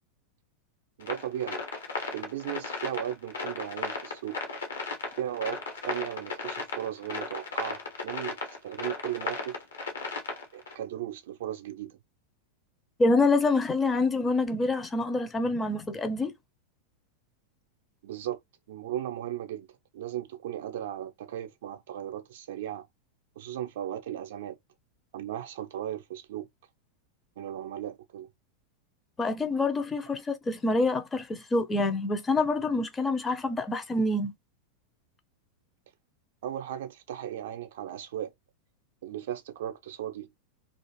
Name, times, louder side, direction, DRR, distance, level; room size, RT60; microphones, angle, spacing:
sound 1, 1.0-10.7, left 4 dB, 70° left, 0.8 m, -35 dB
voice 1, 1.0-1.6 2.1-4.4 5.2-8.4 8.6-9.6 10.5-12.0 18.0-18.4 18.7-19.7 19.9-22.9 23.4-24.6 25.1-26.5 27.4-28.3 36.4-38.3 39.0-40.3, right 11 dB, 55° right, 0.4 m, -36 dB
voice 2, 13.0-16.3 29.2-34.3, left 2 dB, 15° left, 0.5 m, -26 dB
2.4 x 2.4 x 3.0 m
figure-of-eight pair, 90°, 0 cm